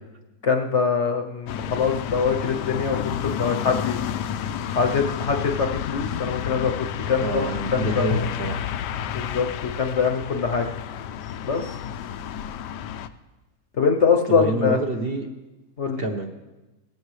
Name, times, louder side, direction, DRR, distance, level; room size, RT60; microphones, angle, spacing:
voice 1, 0.4-4.0 4.7-8.1 9.1-10.7 11.4-11.7 13.8-14.8 15.8-16.0, left 5 dB, 50° left, 3 dB, 1.0 m, -23 dB
sound 1, 1.5-13.1, left 9 dB, 90° left, 1.2 m, -30 dB
voice 2, 7.2-8.6 14.3-15.3 16.0-16.3, right 2 dB, 40° right, 4 dB, 1.0 m, -27 dB
18.5 x 14.5 x 3.2 m, 1.1 s
omnidirectional pair, 1.8 m